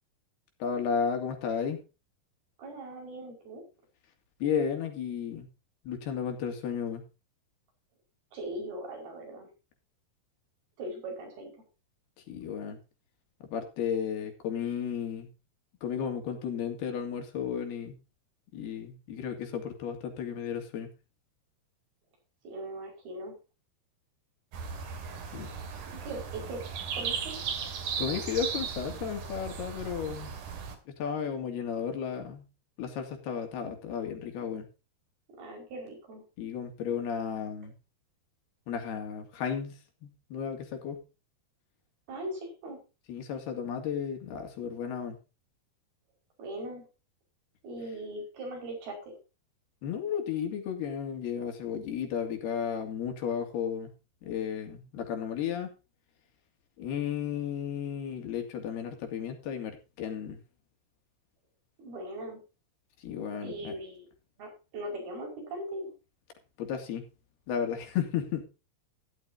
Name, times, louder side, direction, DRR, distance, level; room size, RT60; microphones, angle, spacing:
voice 1, 0.6-1.8 4.4-5.5 5.8-7.0 12.3-12.8 13.5-15.3 15.8-18.0 18.5-20.9 25.3-25.5 28.0-30.4 30.9-32.5 32.8-34.7 36.4-37.7 38.7-41.0 43.1-45.2 49.8-53.9 54.2-55.7 56.8-60.4 63.0-63.7 66.6-67.0 67.5-68.5, left 7 dB, 85° left, 5 dB, 4.5 m, -33 dB
voice 2, 2.6-3.6 8.3-9.5 10.8-11.7 22.4-23.4 25.9-26.6 26.9-27.4 35.4-36.2 42.1-42.8 46.4-46.8 47.6-49.2 61.8-62.4 63.4-64.1 64.4-65.9, right 1 dB, 75° right, 2 dB, 7.2 m, -40 dB
sound 1, 24.5-30.7, right 6 dB, 60° right, 3.4 m, -36 dB
14.0 x 12.5 x 2.8 m, 0.30 s
omnidirectional pair, 4.5 m